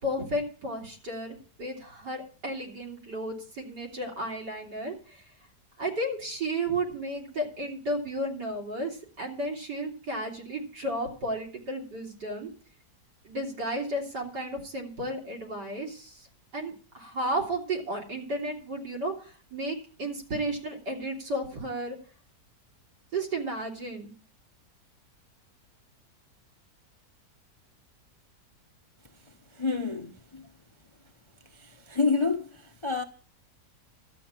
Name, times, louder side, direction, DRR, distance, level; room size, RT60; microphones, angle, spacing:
voice 1, 0.0-5.0 5.8-12.5 13.3-16.1 16.5-19.1 19.5-22.0 23.1-24.1, right 1 dB, 85° right, 3.8 m, -33 dB
voice 2, 29.5-30.5 31.5-33.0, left 4 dB, 30° left, 0.5 m, -29 dB
13.0 x 9.0 x 5.9 m
omnidirectional pair, 1.8 m